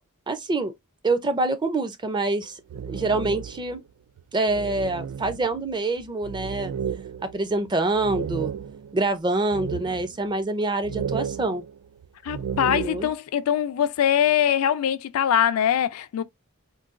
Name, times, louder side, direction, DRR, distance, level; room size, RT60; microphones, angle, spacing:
voice 1, 0.3-0.7 1.0-2.5 2.8-3.8 4.3-6.7 7.2-8.5 8.9-11.6 12.6-13.1, right 2 dB, 20° right, 0.4 m, -26 dB
sound 1, 2.4-3.8 4.2-4.3 4.5-9.0 9.5-10.3 10.8-13.1, right 7 dB, 90° right, 0.3 m, -33 dB
voice 2, 12.2-16.2, left 9 dB, 70° left, 0.3 m, -22 dB
3.8 x 2.2 x 2.4 m
head